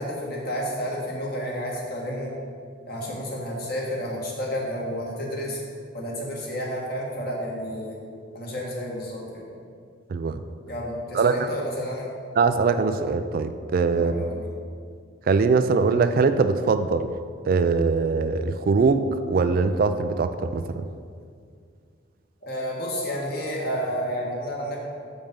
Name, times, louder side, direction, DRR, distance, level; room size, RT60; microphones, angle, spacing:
voice 1, 0.0-2.3 2.9-5.6 5.9-8.0 8.3-9.4 10.7-12.1 13.9-14.5 22.4-24.8, equal, 55° left, -3 dB, 1.6 m, -31 dB
voice 2, 10.1-10.4 11.1-11.6 12.4-14.2 15.3-17.1 17.4-20.8, right 4 dB, 50° right, 10 dB, 0.3 m, -22 dB
7.1 x 5.3 x 5.3 m, 2.2 s
head